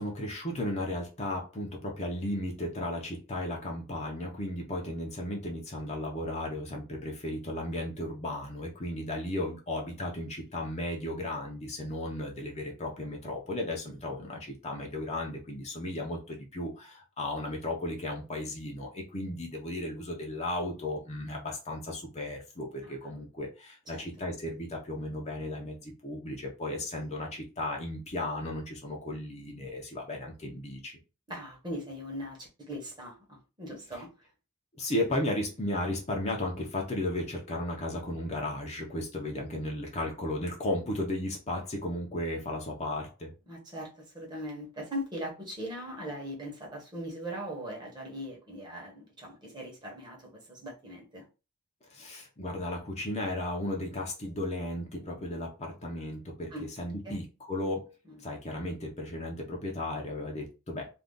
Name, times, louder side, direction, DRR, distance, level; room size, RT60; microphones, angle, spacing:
voice 1, 0.0-31.0 33.9-34.0 34.8-43.3 51.9-60.9, left 1 dB, 30° left, 0.6 m, -35 dB
voice 2, 31.3-34.1 43.5-51.3 56.5-56.7 57.0-57.2 58.1-58.2, equal, 20° right, 0.9 m, -40 dB
2.5 x 2.3 x 3.5 m
head